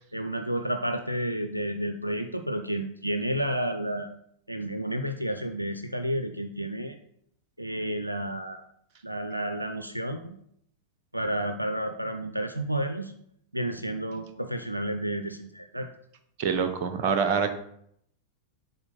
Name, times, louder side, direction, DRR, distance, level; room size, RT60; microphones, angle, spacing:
voice 1, 0.1-4.1 4.5-7.0 7.6-8.6 9.0-10.4 11.1-13.1 13.5-15.9, right 1 dB, 90° right, 7 dB, 0.4 m, -31 dB
voice 2, 16.4-17.5, right 6 dB, 45° right, 8 dB, 0.8 m, -25 dB
7.1 x 3.9 x 5.3 m, 0.70 s
figure-of-eight pair, 90°, 0 cm